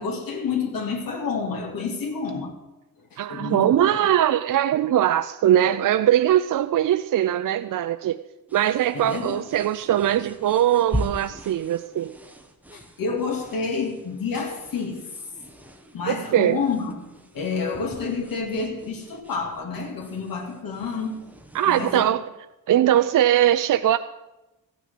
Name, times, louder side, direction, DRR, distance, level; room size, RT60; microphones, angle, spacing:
voice 1, 0.0-2.5 3.1-4.0 8.9-9.4 12.7-15.1 15.9-17.0 17.3-21.2 21.7-22.1, left 5 dB, 70° left, 2.3 m, -29 dB
voice 2, 3.2-8.2 8.5-12.1 16.1-16.6 21.5-22.2 22.7-24.0, right 11 dB, 65° right, 0.5 m, -21 dB
sound 1, 8.5-21.9, equal, 5° right, 1.1 m, -40 dB
14.5 x 6.2 x 9.4 m
wide cardioid pair, 160°, 35 cm